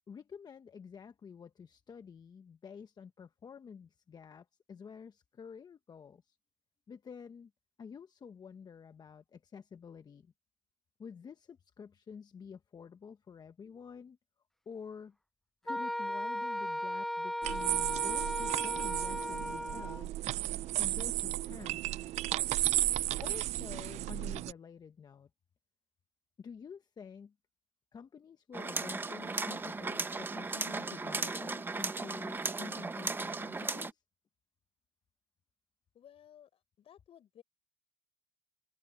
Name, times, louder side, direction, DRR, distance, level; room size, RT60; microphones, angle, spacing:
voice 1, 0.1-6.4 6.9-7.5 7.8-10.3 11.0-14.2 14.7-15.1 15.6-20.2 20.8-21.8 23.2-25.3 26.4-27.3 27.9-34.0, left 6 dB, 30° left, 1.1 m, -49 dB
Wind instrument woodwind instrument, 15.7-20.0, left 1 dB, ahead, 0.5 m, -36 dB
sound 1, 17.4-24.5, right 15 dB, 55° right, 0.5 m, -33 dB
sound 2, 28.5-33.9, right 3 dB, 15° right, 1.2 m, -36 dB
voice 2, 35.9-37.4, left 10 dB, 45° left, 6.0 m, -58 dB
supercardioid pair, 105°, 14 cm